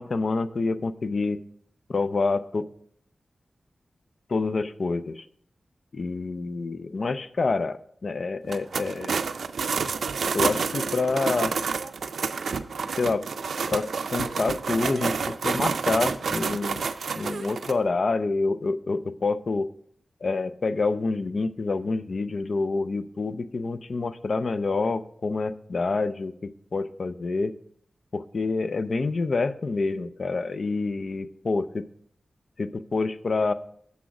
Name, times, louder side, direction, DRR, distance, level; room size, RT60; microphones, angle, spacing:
voice 1, 0.0-1.4 1.9-2.6 4.3-5.3 5.9-9.2 10.3-11.5 13.0-13.2 13.7-16.8 17.1-19.7 20.2-27.5 28.1-31.8 32.6-33.5, left 3 dB, 60° left, 13 dB, 0.4 m, -27 dB
sound 1, 8.5-17.7, right 5 dB, 90° right, 0.4 m, -29 dB
6.9 x 6.2 x 4.7 m, 0.65 s
wide cardioid pair, 70°, 0 cm